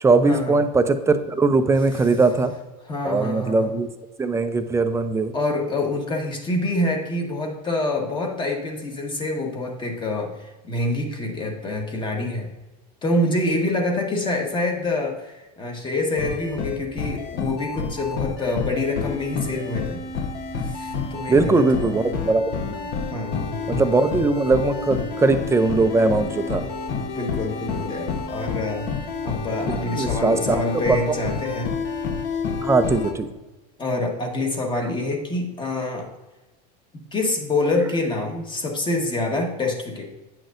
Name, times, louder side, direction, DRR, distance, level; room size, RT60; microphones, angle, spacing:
voice 1, 0.0-2.5 3.0-3.9 4.2-5.3 21.3-22.9 23.7-26.6 29.7-30.6 30.9-31.2 32.6-33.3, right 3 dB, 15° right, 9 dB, 0.5 m, -20 dB
voice 2, 2.9-3.7 5.3-12.5 13.0-20.0 20.6-21.9 23.1-23.7 26.9-28.9 29.2-31.7 33.8-36.1 36.9-40.0, left 2 dB, 20° left, 2 dB, 1.3 m, -26 dB
sound 1, 16.2-33.1, left 5 dB, 55° left, 1.0 m, -29 dB
9.2 x 6.1 x 2.6 m, 1.1 s
supercardioid pair, 115°, 21 cm